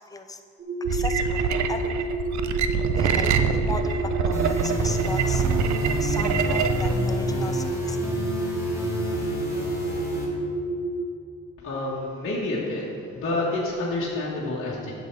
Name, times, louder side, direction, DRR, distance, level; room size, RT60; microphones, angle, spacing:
sound 1, 0.6-11.1, right 2 dB, 25° right, 0.7 m, -29 dB
voice 1, 0.9-2.0 3.0-5.4 5.8-8.2, left 3 dB, 10° left, 6 dB, 0.5 m, -36 dB
sound 2, 0.9-6.9, right 7 dB, 70° right, 0.5 m, -25 dB
sound 3, 4.3-10.3, equal, 10° right, 2.0 m, -29 dB
voice 2, 11.6-14.9, left 2 dB, 45° left, -7 dB, 1.4 m, -28 dB
9.2 x 7.2 x 3.2 m, 2.5 s
cardioid pair, 90°, 30 cm